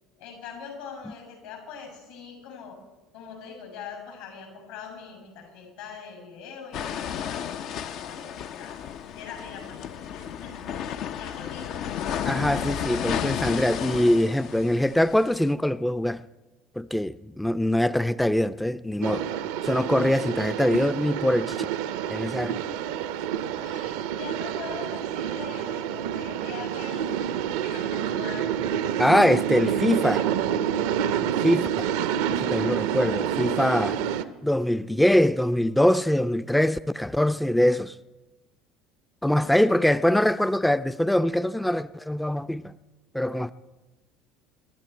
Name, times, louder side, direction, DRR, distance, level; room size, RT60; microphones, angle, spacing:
voice 1, 0.1-2.8 3.1-8.8 9.1-11.9 23.6-27.3 27.6-28.5 31.4-31.5 39.2-40.0, left 6 dB, 75° left, 6.6 m, -42 dB
sound 1, 6.7-15.5, left 9 dB, 55° left, 0.6 m, -33 dB
voice 2, 12.2-16.2 16.8-19.3 19.6-21.6 22.1-22.6 29.0-30.3 31.4-31.7 32.3-34.1 34.4-37.9 39.2-42.7 43.1-43.5, left 1 dB, 5° left, 0.5 m, -23 dB
sound 2, 19.0-34.2, right 9 dB, 75° right, 0.7 m, -28 dB
26.5 x 11.5 x 4.5 m
hypercardioid pair, 65°, 0 cm